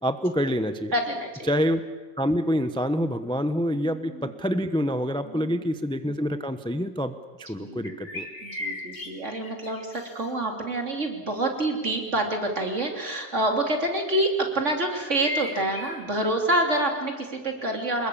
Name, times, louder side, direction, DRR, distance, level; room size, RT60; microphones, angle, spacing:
voice 1, 0.0-0.9 1.5-1.8 2.2-7.1 7.5-8.3, equal, 5° left, 10 dB, 0.8 m, -26 dB
voice 2, 0.9-1.5 3.8-4.4 5.2-5.6 7.6-8.1 8.4-18.1, right 1 dB, 55° right, 3 dB, 3.5 m, -27 dB
sound 1, 7.8-10.3 14.9-16.0, left 2 dB, 55° left, 3.8 m, -36 dB
25.5 x 21.0 x 8.6 m, 1.4 s
omnidirectional pair, 1.5 m